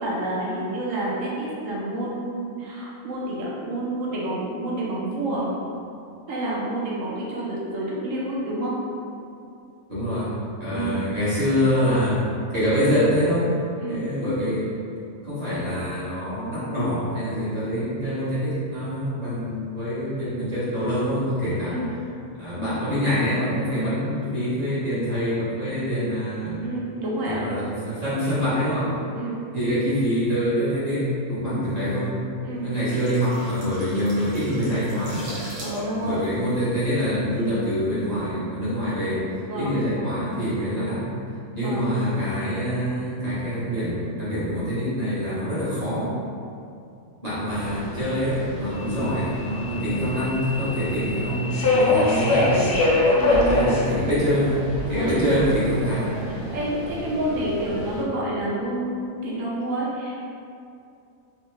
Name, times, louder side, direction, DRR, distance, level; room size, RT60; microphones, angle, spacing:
voice 1, 0.0-5.5 6.3-8.8 10.7-11.1 13.8-14.1 21.6-21.9 26.6-27.4 29.1-29.4 32.4-32.6 35.6-36.2 39.4-39.8 41.6-41.9 48.8-49.2 49.6-49.9 53.1-53.8 54.9-55.1 56.5-60.2, right 1 dB, 65° right, -5 dB, 0.9 m, -29 dB
voice 2, 9.9-10.3 10.6-12.2 12.5-13.5 13.9-14.7 15.2-21.8 22.4-26.6 27.2-29.0 29.5-32.1 32.6-35.3 36.0-39.2 39.5-41.0 41.5-46.1 47.2-52.8 53.5-54.6 54.9-56.4, equal, 30° right, -13 dB, 1.0 m, -25 dB
sound 1, 32.6-37.4 37.7-37.9, right 1 dB, 85° right, 1.4 m, -39 dB
Subway metro underground, 47.5-58.0, left 2 dB, 60° left, 0.6 m, -25 dB
3.0 x 2.1 x 3.1 m, 2.5 s
omnidirectional pair, 1.6 m